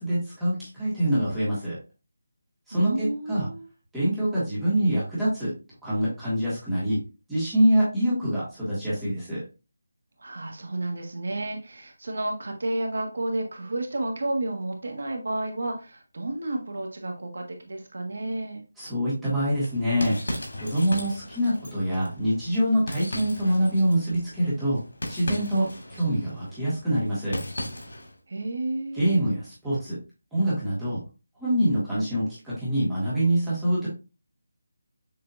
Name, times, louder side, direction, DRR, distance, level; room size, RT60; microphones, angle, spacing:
voice 1, 0.0-1.8 2.7-3.5 3.9-5.5 5.8-7.0 7.3-9.4 18.8-20.2 20.5-24.8 25.1-25.6 25.9-27.4 28.9-30.0 30.3-31.0 31.4-33.9, equal, 5° right, -11 dB, 1.4 m, -25 dB
voice 2, 2.7-3.7 10.2-18.6 28.3-29.4, right 2 dB, 55° right, 2 dB, 1.4 m, -31 dB
sound 1, 19.5-28.2, left 1 dB, 90° left, 2.1 m, -37 dB
6.8 x 2.7 x 2.5 m, 0.30 s
figure-of-eight pair, 180°, 0 cm